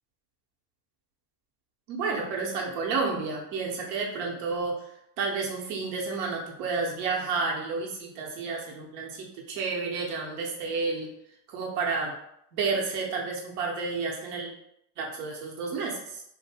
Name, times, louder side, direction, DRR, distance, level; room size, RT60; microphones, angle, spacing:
voice 1, 1.9-11.1 11.5-12.1 12.5-14.5 15.0-16.2, right 4 dB, 75° right, -2 dB, 0.9 m, -31 dB
2.7 x 2.1 x 3.3 m, 0.76 s
supercardioid pair, 90°, 49 cm